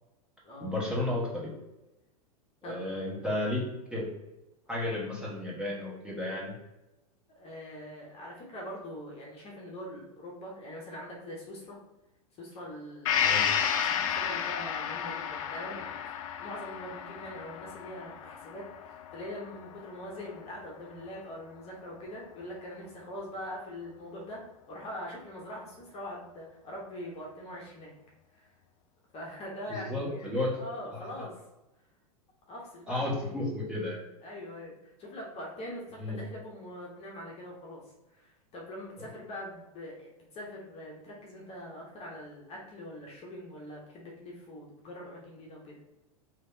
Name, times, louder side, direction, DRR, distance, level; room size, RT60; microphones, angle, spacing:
voice 1, 0.6-1.5 2.6-3.6 3.9-4.1 4.7-6.5 13.2-13.4 29.7-30.5 30.9-31.1 32.9-34.0 36.0-36.2, left 1 dB, 5° right, -6 dB, 1.2 m, -32 dB
voice 2, 2.6-3.3 4.8-5.0 7.4-11.8 12.4-15.9 16.4-24.4 24.7-27.9 28.3-28.5 29.1-31.3 32.5-33.4 34.2-37.8 38.1-45.8, left 1 dB, 35° left, -2 dB, 1.0 m, -43 dB
Gong, 13.0-20.7 21.1-21.2, left 8 dB, 60° left, 0.4 m, -32 dB
3.2 x 2.9 x 2.7 m, 0.97 s
hypercardioid pair, 100°, 19 cm